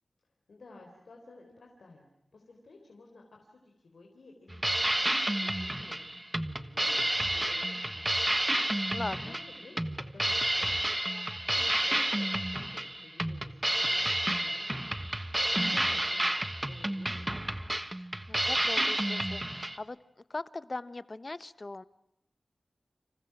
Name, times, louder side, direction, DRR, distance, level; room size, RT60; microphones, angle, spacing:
voice 1, 0.5-5.0 5.3-6.0 6.3-7.1 7.3-8.5 9.2-14.9 15.4-16.4 16.6-17.4, left 3 dB, 85° left, 1 dB, 4.1 m, -54 dB
sound 1, 4.5-19.8, right 1 dB, 15° right, 1.4 m, -30 dB
voice 2, 8.9-9.3 18.0-20.0 20.3-21.8, left 2 dB, 40° left, 15 dB, 0.9 m, -40 dB
30.0 x 27.5 x 6.0 m, 0.88 s
wide cardioid pair, 90°, 0 cm